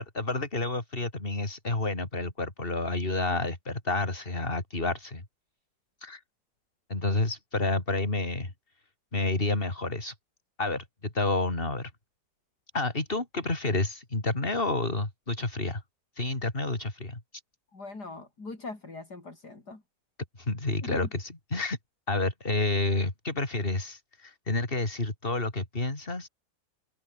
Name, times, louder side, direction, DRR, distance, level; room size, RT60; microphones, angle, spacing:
voice 1, 0.0-5.2 6.0-6.2 6.9-8.5 9.1-10.1 10.6-11.9 12.7-15.8 16.2-17.4 20.4-21.8 22.1-26.3, left 2 dB, 30° left, 4.0 m, -29 dB
voice 2, 17.7-19.8 20.8-21.1, left 3 dB, 65° left, 5.4 m, -41 dB
open air
omnidirectional pair, 1.9 m